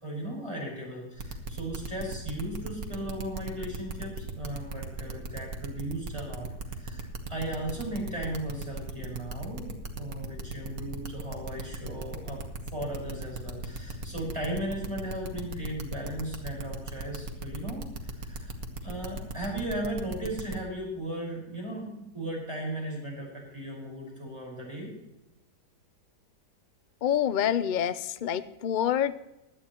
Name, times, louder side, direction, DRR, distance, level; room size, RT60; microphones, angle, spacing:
voice 1, 0.0-6.5 6.8-12.4 12.7-18.5 18.8-24.9, right 1 dB, 15° right, -2 dB, 5.3 m, -36 dB
sound 1, 1.2-20.6, right 3 dB, 60° right, 1.8 m, -37 dB
voice 2, 27.0-29.2, left 10 dB, 65° left, 13 dB, 0.4 m, -27 dB
17.0 x 11.5 x 3.0 m, 0.95 s
omnidirectional pair, 1.7 m